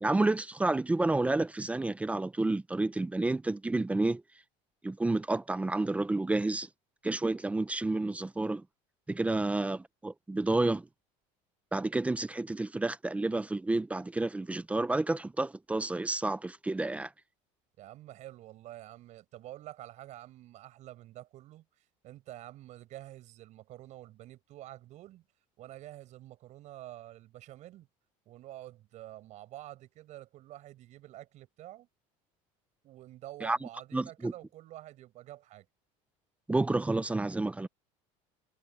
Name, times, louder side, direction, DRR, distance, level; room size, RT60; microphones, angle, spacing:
voice 1, 0.0-4.2 4.8-6.7 7.0-8.6 9.1-10.9 11.7-17.1 33.4-33.6 33.9-34.3 36.5-37.7, right 2 dB, 10° right, 0.7 m, -30 dB
voice 2, 17.8-25.3 25.6-27.9 28.3-31.9 32.8-35.7, right 14 dB, 50° right, 6.9 m, -48 dB
cardioid pair, 135°, 16 cm